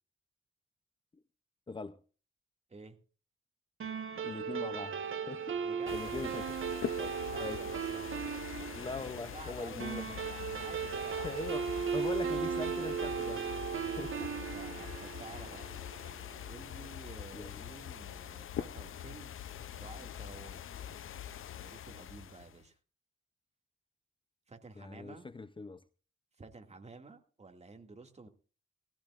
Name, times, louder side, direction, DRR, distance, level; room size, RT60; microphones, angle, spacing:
voice 1, 1.7-2.0 4.2-6.4 6.9-7.6 8.8-10.2 11.2-13.5 13.8-14.4 17.3-17.6 24.8-25.8, left 3 dB, 25° left, 0.6 m, -42 dB
sound 1, 3.8-16.5, right 6 dB, 80° right, 1.3 m, -37 dB
voice 2, 5.6-6.4 7.3-8.0 9.0-11.3 14.1-15.6 16.5-19.4 19.7-20.7 21.6-22.8 24.5-25.2 26.4-28.3, right 3 dB, 30° right, 2.3 m, -51 dB
sound 2, 5.9-22.7, left 10 dB, 80° left, 0.6 m, -44 dB
19.5 x 15.5 x 2.5 m
wide cardioid pair, 135°, 21 cm